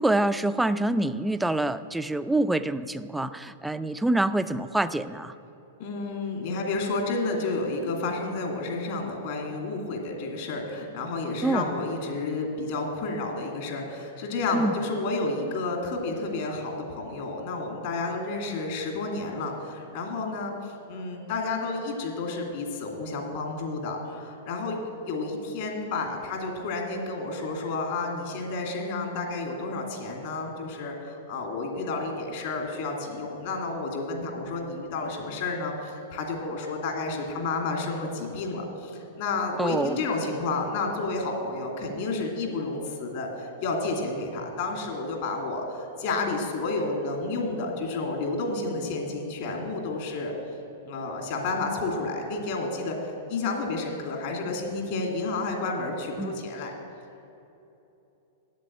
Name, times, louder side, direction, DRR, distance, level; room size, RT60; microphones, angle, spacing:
voice 1, 0.0-5.3 11.4-11.7 14.5-14.8 39.6-40.0 56.2-56.3, right 2 dB, 5° right, 13 dB, 0.4 m, -26 dB
voice 2, 5.8-50.3 50.8-56.7, left 3 dB, 60° left, 1 dB, 2.2 m, -31 dB
8.1 x 7.6 x 8.5 m, 3.0 s
hypercardioid pair, 105°, 0 cm